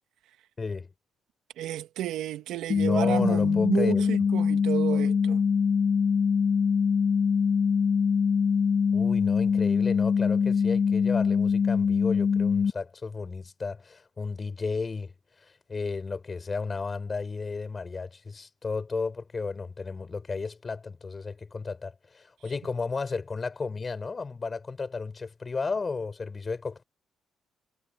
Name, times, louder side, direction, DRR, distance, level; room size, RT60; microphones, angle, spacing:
voice 1, 0.6-0.9 2.8-4.0 8.9-15.1 15.4-26.8, left 4 dB, 30° left, 6.0 m, -33 dB
voice 2, 1.6-5.4, right 12 dB, 85° right, 1.3 m, -31 dB
sound 1, 2.7-12.7, left 6 dB, 50° left, 0.8 m, -23 dB
cardioid pair, 90°, 0 cm